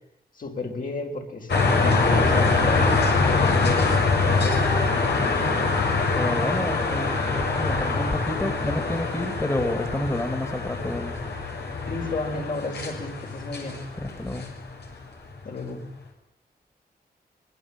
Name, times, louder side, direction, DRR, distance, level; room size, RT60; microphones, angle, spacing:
voice 1, 0.3-4.0 4.2-4.8 11.9-13.8 15.4-15.8, left 3 dB, 55° left, 2 dB, 5.7 m, -32 dB
sound 1, 1.5-14.9, left 3 dB, 85° left, 7.1 m, -24 dB
voice 2, 5.1-5.6 6.1-11.2 14.0-14.4, left 1 dB, 15° left, 7 dB, 2.9 m, -29 dB
25.5 x 22.0 x 9.1 m, 0.78 s
wide cardioid pair, 130°, 17 cm